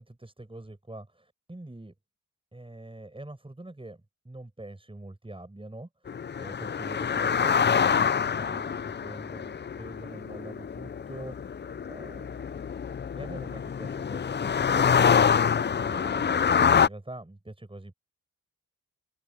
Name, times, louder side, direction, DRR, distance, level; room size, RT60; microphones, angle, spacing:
voice 1, 0.0-1.9 2.5-6.1 6.4-11.6 11.9-12.4 13.2-15.1 15.8-17.9, right 1 dB, 15° right, 7.2 m, -44 dB
sound 1, 6.1-16.9, left 7 dB, 30° left, 0.5 m, -26 dB
wide cardioid pair, 100°, 34 cm